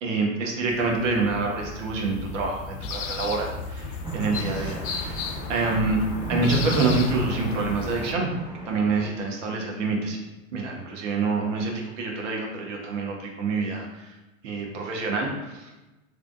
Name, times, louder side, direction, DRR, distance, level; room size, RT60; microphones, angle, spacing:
voice 1, 0.0-5.2 5.5-6.0 6.3-8.3 8.7-10.2 10.5-14.2 14.4-15.7, right 3 dB, 60° right, 0 dB, 1.1 m, -27 dB
sound 1, 0.7-8.1, left 4 dB, 65° left, 0.5 m, -34 dB
sound 2, 4.0-9.1, right 3 dB, 10° right, 0.8 m, -34 dB
3.4 x 3.4 x 2.4 m, 1.1 s
figure-of-eight pair, 90°, 42 cm